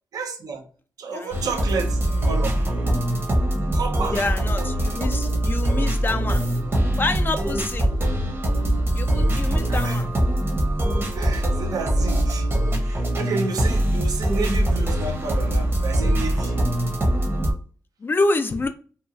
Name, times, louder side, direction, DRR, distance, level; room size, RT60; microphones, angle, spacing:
voice 1, 0.1-0.6 1.0-2.6 3.7-4.2 5.2-5.3 9.7-10.0 11.1-12.5 12.8-16.5, right 4 dB, 80° right, 0.5 m, -31 dB
voice 2, 1.1-1.4 4.1-6.4 7.0-7.9 8.9-10.1 18.0-18.7, left 3 dB, 35° left, 0.3 m, -27 dB
sound 1, 1.3-17.5, right 1 dB, 40° right, 0.8 m, -22 dB
2.8 x 2.3 x 2.6 m
cardioid pair, 80°, 6 cm